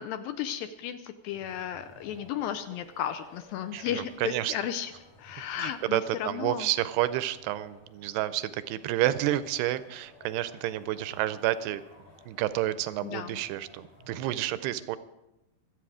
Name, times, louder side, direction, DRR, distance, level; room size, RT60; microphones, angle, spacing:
voice 1, 0.0-4.9 5.2-6.7 13.0-13.4, left 10 dB, 80° left, 10 dB, 2.2 m, -34 dB
sound 1, 1.2-14.4, left 2 dB, 60° left, 5.8 m, -56 dB
voice 2, 3.7-4.5 5.6-11.8 12.3-15.0, right 14 dB, 80° right, 14 dB, 2.6 m, -30 dB
24.5 x 8.4 x 4.9 m, 0.94 s
omnidirectional pair, 4.7 m